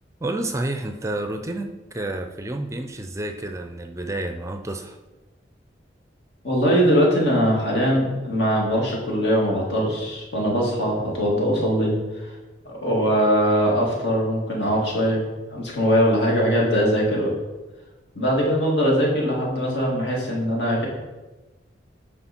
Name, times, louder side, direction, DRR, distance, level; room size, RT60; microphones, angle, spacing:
voice 1, 0.2-1.7 1.9-5.0, right 1 dB, 15° right, 6 dB, 0.4 m, -29 dB
voice 2, 6.4-11.9 12.2-12.3 12.6-15.2 15.5-17.3 18.2-20.9, equal, 70° left, -3 dB, 2.5 m, -21 dB
9.9 x 4.6 x 4.4 m, 1.2 s
head